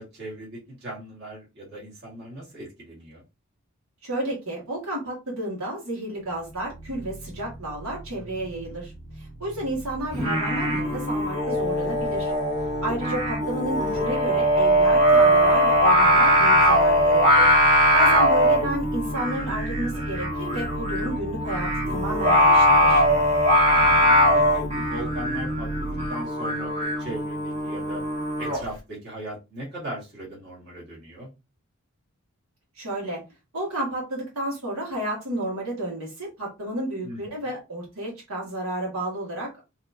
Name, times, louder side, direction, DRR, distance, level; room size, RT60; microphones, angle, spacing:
voice 1, 0.0-3.2 9.7-9.8 18.1-18.2 23.7-28.0 28.4-31.3 37.0-37.5, right 1 dB, 50° right, -5 dB, 1.9 m, -39 dB
voice 2, 4.0-8.9 9.2-12.3 12.8-17.5 17.9-23.0 32.8-33.2 33.5-39.6, right 1 dB, 75° right, -3 dB, 2.0 m, -31 dB
sound 1, 6.2-26.1, right 2 dB, 30° left, 0.5 m, -37 dB
Singing, 10.1-28.6, equal, 30° right, 1.8 m, -21 dB
4.2 x 3.0 x 2.7 m, 0.26 s
head